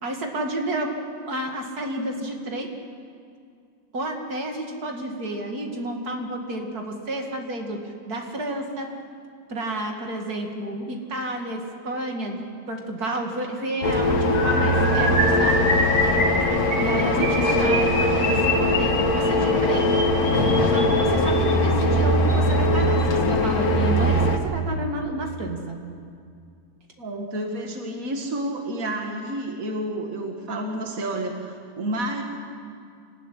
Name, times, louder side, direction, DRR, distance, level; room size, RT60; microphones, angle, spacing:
voice 1, 0.0-0.9 1.3-2.7 3.9-8.9 9.5-15.8 16.8-19.9 20.7-25.8, right 1 dB, 85° right, 2 dB, 2.8 m, -31 dB
sound 1, 13.8-24.4, left 1 dB, 80° left, 2.1 m, -21 dB
sound 2, 14.3-21.5 22.3-22.5 22.8-23.0 23.3-23.5, equal, 25° left, 6.4 m, -26 dB
voice 2, 16.7-17.3 27.0-32.2, right 1 dB, 65° right, 2 dB, 2.3 m, -30 dB
26.5 x 15.0 x 10.0 m, 2.3 s
omnidirectional pair, 1.6 m